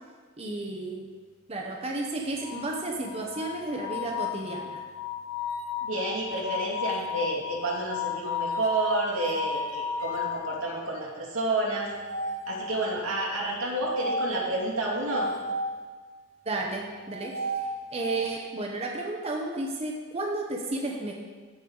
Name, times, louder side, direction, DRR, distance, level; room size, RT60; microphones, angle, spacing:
voice 1, 0.4-1.1 1.5-4.8 16.5-17.5 17.9-21.1, right 2 dB, 30° right, 0 dB, 0.8 m, -32 dB
sound 1, 2.4-10.5 11.8-13.1 13.8-15.8 17.0-18.3, left 3 dB, 60° left, 0.9 m, -34 dB
voice 2, 5.8-11.9 12.5-15.3, right 2 dB, 90° right, -4 dB, 2.5 m, -30 dB
15.0 x 5.4 x 3.9 m, 1.4 s
head